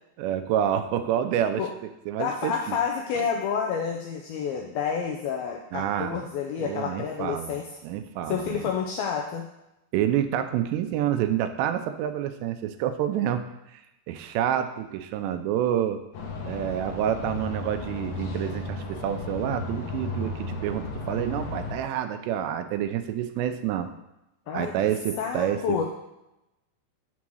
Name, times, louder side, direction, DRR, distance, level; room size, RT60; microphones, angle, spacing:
voice 1, 0.2-1.6 2.1-2.8 3.2-3.3 5.7-6.2 6.6-7.6 7.8-8.7 9.9-13.4 13.7-13.8 14.1-16.0 16.4-23.9 24.5-25.8, right 10 dB, 85° right, 9 dB, 2.7 m, -28 dB
voice 2, 2.2-7.7 8.3-9.5 24.5-24.8 25.1-25.8, left 7 dB, 85° left, 1 dB, 2.1 m, -29 dB
sound 1, 16.1-21.7, left 3 dB, 65° left, 2.5 m, -34 dB
7.2 x 3.8 x 6.2 m, 0.91 s
omnidirectional pair, 4.9 m